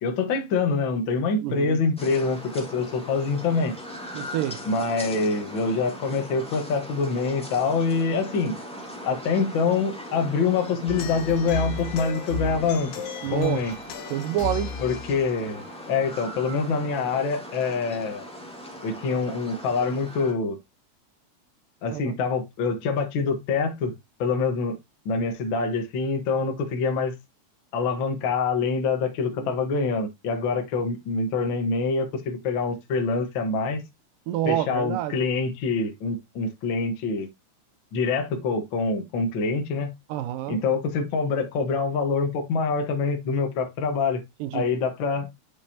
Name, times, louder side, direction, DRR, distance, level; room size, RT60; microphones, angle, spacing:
voice 1, 0.0-3.7 4.6-8.6 9.0-12.9 13.3-13.7 14.8-18.3 18.8-20.6 21.8-23.9 24.2-24.7 25.0-27.1 27.7-33.8 34.4-37.3 37.9-39.9 40.5-44.2 44.5-45.3, left 4 dB, 50° left, 1.6 m, -25 dB
voice 2, 1.4-1.8 4.1-4.6 13.2-13.6 14.1-14.7 21.9-22.1 29.4-29.5 34.3-35.1 40.1-40.6 44.4-44.6, right 13 dB, 90° right, 2.4 m, -28 dB
sound 1, 2.0-20.3, equal, 10° left, 0.3 m, -40 dB
sound 2, 10.9-16.7, left 6 dB, 85° left, 2.7 m, -35 dB
8.5 x 5.3 x 2.8 m
omnidirectional pair, 3.8 m